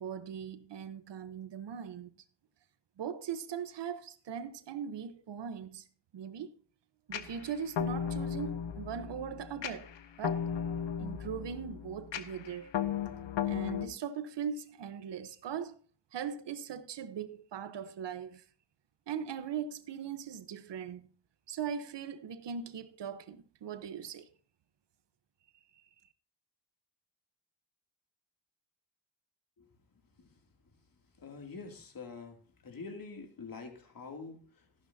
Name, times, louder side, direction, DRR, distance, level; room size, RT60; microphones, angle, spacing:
voice 1, 0.0-2.1 3.0-5.8 6.1-6.5 7.1-9.9 10.2-10.4 11.0-12.7 13.4-15.8 16.1-18.4 19.1-21.1 21.5-24.3, right 7 dB, 70° right, 1.1 m, -40 dB
sound 1, 7.1-13.9, left 8 dB, 70° left, 1.1 m, -35 dB
voice 2, 31.1-32.4 32.6-34.7, left 4 dB, 50° left, 2.8 m, -46 dB
13.5 x 11.5 x 2.8 m
cardioid pair, 80°, 45 cm